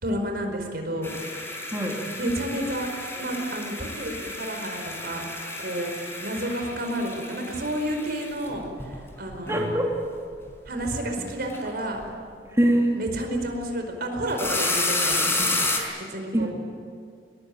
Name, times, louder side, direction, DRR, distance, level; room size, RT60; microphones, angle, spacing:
voice 1, 0.0-1.6 2.1-2.9 3.2-5.9 6.2-9.8 10.6-12.0 12.9-16.5, right 1 dB, 60° right, 4 dB, 4.9 m, -31 dB
sound 1, 1.0-10.0 10.3-10.9 11.2-11.7 12.0-12.1 14.2-15.8, left 2 dB, 15° left, 5.0 m, -31 dB
voice 2, 9.5-9.9 12.5-13.0 16.3-16.5, right 1 dB, 15° right, -2 dB, 3.2 m, -22 dB
23.5 x 22.0 x 9.4 m, 2.2 s
head